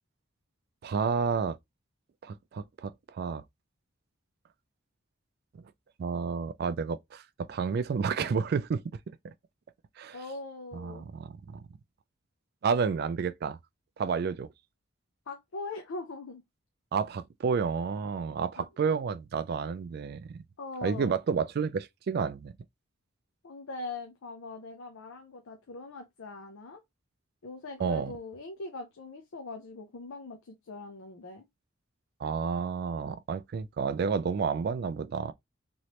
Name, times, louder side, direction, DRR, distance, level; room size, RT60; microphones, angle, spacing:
voice 1, 0.8-1.6 2.2-3.4 6.0-9.3 10.0-10.2 10.7-11.6 12.6-13.6 14.0-14.5 16.9-20.4 20.8-22.5 27.8-28.1 32.2-35.3, right 5 dB, 50° right, 0.3 m, -30 dB
voice 2, 10.1-11.0 15.3-16.4 18.6-18.7 20.6-21.1 23.4-26.8 27.4-31.4, left 3 dB, 85° left, 0.5 m, -41 dB
3.1 x 3.0 x 2.8 m
head